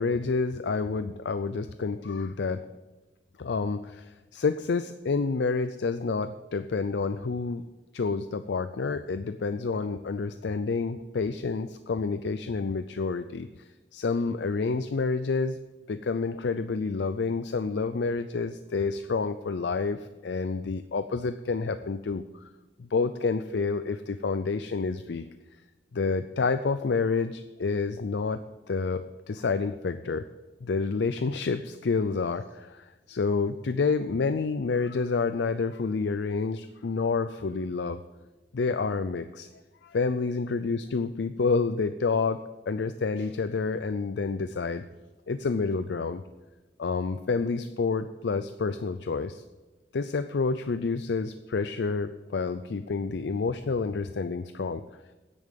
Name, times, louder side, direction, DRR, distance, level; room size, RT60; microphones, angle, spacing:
voice 1, 0.0-2.6 3.4-7.6 7.9-13.5 13.9-15.6 15.9-22.2 22.8-25.3 25.9-28.4 28.7-30.3 30.6-38.0 38.5-39.5 39.8-42.4 42.7-44.9 45.3-46.2 46.8-49.4 49.9-54.8, left 4 dB, 70° left, 11 dB, 0.5 m, -29 dB
10.0 x 8.7 x 7.5 m, 1.2 s
head